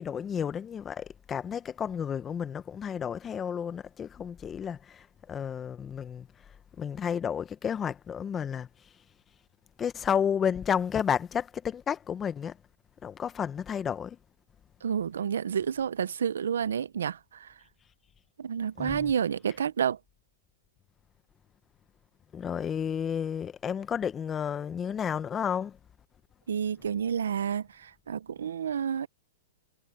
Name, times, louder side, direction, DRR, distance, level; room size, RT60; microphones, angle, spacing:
voice 1, 0.0-6.3 6.8-8.7 9.8-12.6 13.0-14.2 18.8-19.1 22.3-25.8, left 8 dB, 20° left, 1.0 m, -31 dB
voice 2, 14.8-17.5 18.4-20.0 26.5-29.1, right 8 dB, 85° right, 0.8 m, -30 dB
hypercardioid pair, 140°, 0 cm